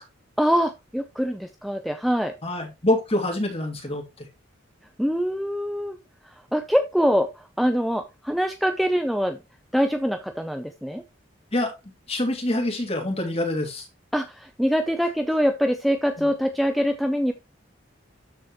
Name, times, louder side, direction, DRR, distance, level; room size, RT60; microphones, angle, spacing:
voice 1, 0.4-2.3 5.0-6.0 6.2-9.4 9.7-11.0 14.1-17.3, equal, ahead, 0.6 m, -24 dB
voice 2, 2.4-4.3 11.5-11.7 12.1-13.8 16.2-16.3, left 1 dB, 30° left, 2.9 m, -26 dB
13.0 x 4.4 x 3.1 m
head